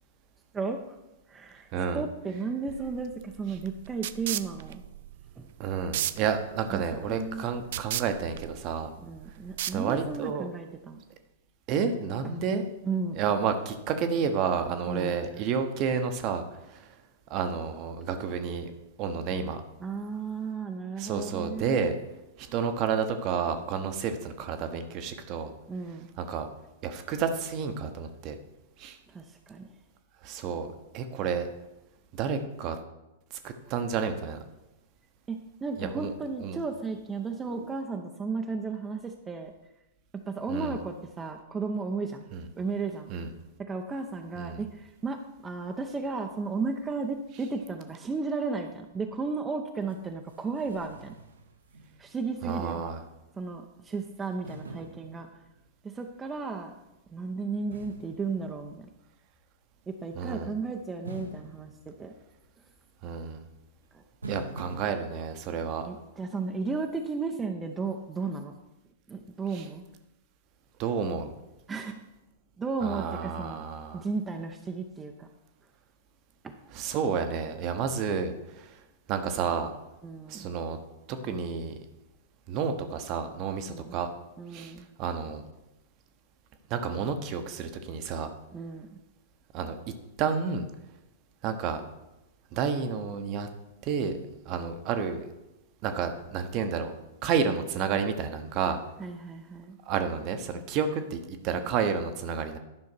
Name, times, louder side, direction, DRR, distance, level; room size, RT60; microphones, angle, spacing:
voice 1, 0.5-1.0 1.3-1.7 1.9-4.8 5.4-5.5 6.7-7.4 9.0-11.0 12.8-13.2 14.9-15.2 19.8-21.9 25.7-26.1 29.1-29.7 35.3-39.5 40.1-42.3 42.6-43.1 43.6-51.2 52.0-52.8 53.4-55.3 55.8-56.7 57.1-58.9 59.9-62.1 63.9-64.0 65.8-68.6 69.1-69.8 71.7-72.0 72.6-73.6 73.9-75.3 76.4-76.6 80.0-80.5 83.7-84.0 84.4-84.9 88.5-89.0 99.0-99.8, right 4 dB, 15° right, 3 dB, 0.7 m, -34 dB
voice 2, 1.7-2.0 5.6-8.9 9.7-10.5 11.7-12.6 13.2-16.4 16.7-16.8 17.3-18.7 19.0-19.6 21.0-22.0 22.4-25.5 26.2-26.5 26.8-28.4 28.8-29.0 30.2-30.7 30.9-31.5 32.2-32.8 33.4-34.4 35.8-36.1 36.4-36.6 40.5-40.8 42.3-42.4 43.1-43.3 44.4-44.6 52.4-53.0 60.1-60.5 63.0-63.4 64.3-65.9 69.5-69.6 70.8-71.3 72.8-74.0 76.7-78.7 79.1-79.7 80.3-80.8 81.1-81.7 82.5-84.1 84.5-84.7 85.0-85.4 86.7-88.3 89.5-89.8 90.2-90.7 91.4-91.8 92.5-93.5 93.8-94.2 94.5-95.3 95.8-96.9 97.2-98.8 99.9-102.6, right 6 dB, 40° right, 8 dB, 0.9 m, -30 dB
sound 1, 2.7-10.3, right 13 dB, 55° right, 0.3 m, -37 dB
sound 2, 49.9-50.0 50.3-52.3 52.7-52.8 54.4-55.8 57.7-59.1 61.0-62.6 64.2-64.9, right 2 dB, 80° right, 1.0 m, -45 dB
11.0 x 5.6 x 4.5 m, 0.95 s
figure-of-eight pair, 100°, 0 cm